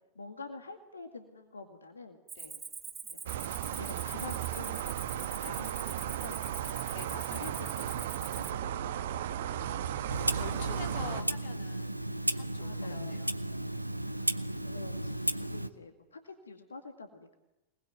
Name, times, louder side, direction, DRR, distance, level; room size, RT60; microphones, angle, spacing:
voice 1, 0.2-2.6 3.0-3.4 3.8-6.9 7.3-8.9 9.8-10.3 12.6-13.1 13.5-13.7 14.1-17.3, left 3 dB, 75° left, 6 dB, 2.1 m, -48 dB
Cricket, 2.3-8.5, right 5 dB, 15° right, 2.2 m, -44 dB
sound 1, 3.3-11.2, right 11 dB, 60° right, 1.2 m, -35 dB
voice 2, 6.9-7.6 9.3-12.0 12.3-13.3, left 7 dB, 55° left, 6 dB, 2.6 m, -48 dB
Clock, 10.1-15.7, right 1 dB, 90° right, 0.9 m, -34 dB
27.5 x 20.0 x 9.4 m, 0.98 s
figure-of-eight pair, 90°, 0 cm